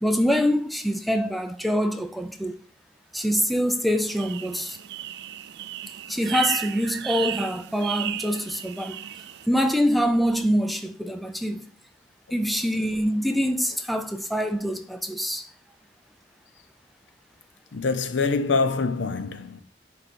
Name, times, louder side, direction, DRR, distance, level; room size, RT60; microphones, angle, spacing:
voice 1, 0.0-2.6 3.1-4.8 6.1-9.0 9.5-11.7 12.3-15.5, equal, ahead, 0.5 m, -25 dB
sound 1, 4.1-9.5, right 12 dB, 60° right, 0.3 m, -34 dB
voice 2, 17.7-19.6, left 4 dB, 90° left, 0.7 m, -25 dB
9.5 x 3.4 x 4.3 m
head